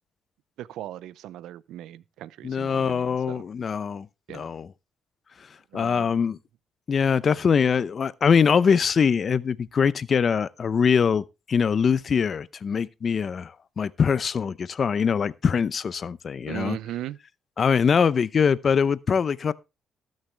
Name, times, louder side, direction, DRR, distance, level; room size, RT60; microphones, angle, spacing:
voice 1, 0.6-3.4 4.3-4.5 5.7-6.2 16.5-17.2, right 13 dB, 85° right, 0.5 m, -38 dB
voice 2, 2.4-4.1 4.3-4.7 5.7-6.4 6.9-16.8 17.6-19.5, left 6 dB, 45° left, 0.6 m, -23 dB
19.0 x 6.5 x 3.3 m
cardioid pair, 90°, 0 cm